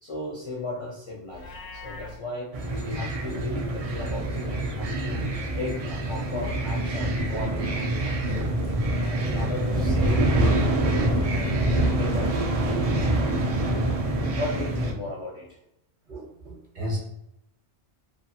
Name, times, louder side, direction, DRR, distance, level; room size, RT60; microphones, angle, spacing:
voice 1, 0.0-2.5 2.8-5.3 5.6-11.7 12.0-13.5 14.3-15.6, left 2 dB, 45° left, -5 dB, 0.4 m, -36 dB
Livestock farm animals working animals, 1.3-2.2, left 2 dB, 75° left, 0.9 m, -41 dB
sound 1, 2.5-14.9, right 1 dB, 70° right, 0.3 m, -25 dB
voice 2, 16.1-17.0, equal, 50° right, -2 dB, 0.7 m, -33 dB
2.6 x 2.3 x 2.7 m, 0.81 s
omnidirectional pair, 1.2 m